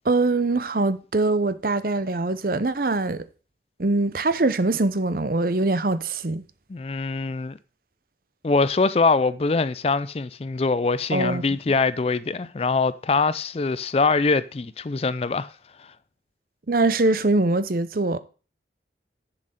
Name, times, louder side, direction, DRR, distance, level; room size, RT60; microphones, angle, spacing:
voice 1, 0.0-3.3 3.8-6.4 11.1-11.4 16.7-18.2, right 2 dB, 50° right, 0.7 m, -23 dB
voice 2, 6.7-7.6 8.4-15.5, left 4 dB, 35° left, 0.4 m, -23 dB
7.8 x 7.4 x 6.4 m
head